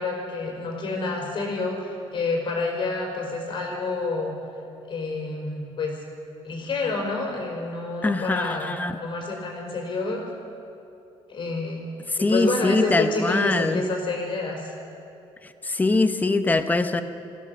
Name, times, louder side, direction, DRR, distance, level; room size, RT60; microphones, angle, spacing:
voice 1, 0.0-4.4 4.9-6.0 6.4-8.7 9.0-10.3 11.3-11.8 12.2-14.7, left 3 dB, 45° left, 1 dB, 4.8 m, -28 dB
voice 2, 8.0-9.0 12.2-13.8 15.6-17.0, left 3 dB, 15° left, 9 dB, 0.9 m, -23 dB
21.5 x 16.0 x 7.7 m, 2.8 s
cardioid pair, 140°, 12 cm